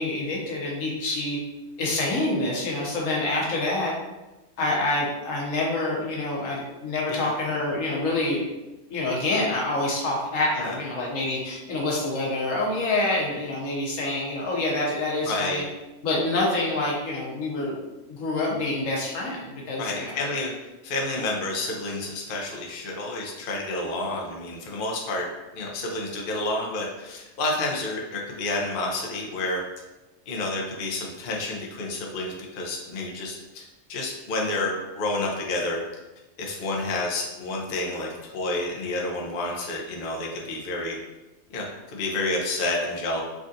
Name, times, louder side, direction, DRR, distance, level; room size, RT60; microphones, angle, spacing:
voice 1, 0.0-1.4 1.8-3.9 4.6-8.4 8.9-15.6 16.0-17.8 18.1-20.2 21.1-21.2, left 2 dB, 90° left, -3 dB, 1.2 m, -27 dB
voice 2, 15.2-15.6 19.8-20.5 20.8-25.3 25.5-29.6 30.3-33.6 33.9-35.8 36.4-38.1 38.3-41.0 41.5-43.2, left 2 dB, 55° left, -1 dB, 0.7 m, -29 dB
3.5 x 2.4 x 2.6 m, 1.1 s
omnidirectional pair, 1.3 m